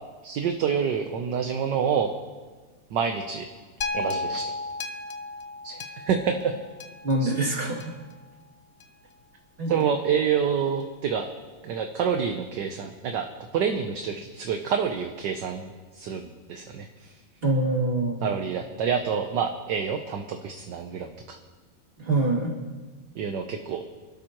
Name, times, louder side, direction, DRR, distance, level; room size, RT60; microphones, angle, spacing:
voice 1, 0.2-2.1 2.9-3.5 3.9-4.5 5.6-6.5 7.2-7.3 9.7-11.3 11.6-13.3 13.5-17.2 18.2-21.4 23.1-23.8, right 7 dB, 65° right, 5 dB, 1.4 m, -27 dB
sound 1, 3.8-8.1 8.8-8.9, left 3 dB, 80° left, 0.5 m, -34 dB
voice 2, 7.0-7.9 9.6-9.8 17.4-18.3 22.0-22.5, right 2 dB, 30° right, -3 dB, 2.8 m, -25 dB
26.5 x 12.5 x 3.0 m, 1.4 s
omnidirectional pair, 2.2 m